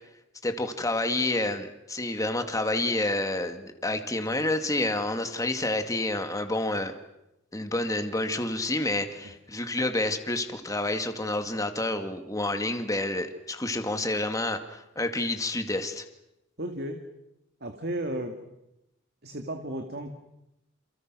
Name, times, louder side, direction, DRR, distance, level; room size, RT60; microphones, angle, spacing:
voice 1, 0.4-6.9 7.5-16.0, left 2 dB, 15° left, 7 dB, 2.1 m, -29 dB
voice 2, 16.6-17.0 17.6-18.4 19.2-20.1, right 1 dB, 55° right, 5 dB, 2.3 m, -33 dB
28.5 x 28.5 x 6.2 m, 0.89 s
head